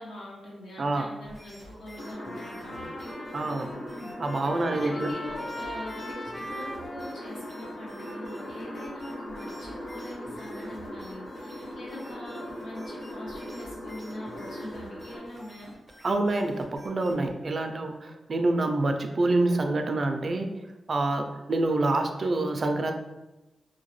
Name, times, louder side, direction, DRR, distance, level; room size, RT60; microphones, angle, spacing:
voice 1, 0.0-3.1 3.9-4.2 4.7-6.2 6.5-15.7, left 1 dB, 90° left, -5 dB, 1.0 m, -42 dB
sound 1, 1.2-17.3, equal, 50° left, 1.4 m, -50 dB
sound 2, 2.0-15.2, equal, 65° left, 1.0 m, -40 dB
Trumpet, 2.0-10.1, equal, 25° left, 0.5 m, -42 dB
voice 2, 3.3-3.7 4.2-5.1 16.0-20.5 20.9-22.9, right 2 dB, 50° right, 5 dB, 0.3 m, -26 dB
2.8 x 2.6 x 3.0 m, 1.0 s
cardioid pair, 90°, 0 cm